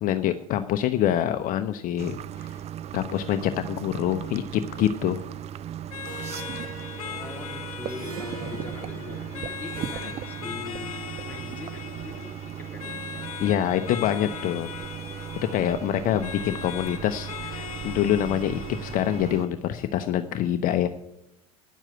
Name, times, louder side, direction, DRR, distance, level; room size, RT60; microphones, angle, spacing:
voice 1, 0.0-2.6 2.9-5.2 13.4-14.7 15.5-20.9, left 11 dB, 50° left, 9 dB, 0.7 m, -26 dB
sound 1, 2.0-19.5, right 10 dB, 35° right, 0.4 m, -37 dB
sound 2, 5.9-19.5, left 9 dB, 75° left, 1.0 m, -40 dB
Harp, 6.0-11.1, right 2 dB, 75° right, 5.3 m, -43 dB
voice 2, 7.0-13.3, left 3 dB, 10° left, 0 dB, 2.9 m, -42 dB
10.0 x 7.4 x 7.9 m, 0.88 s
hypercardioid pair, 75°, 18 cm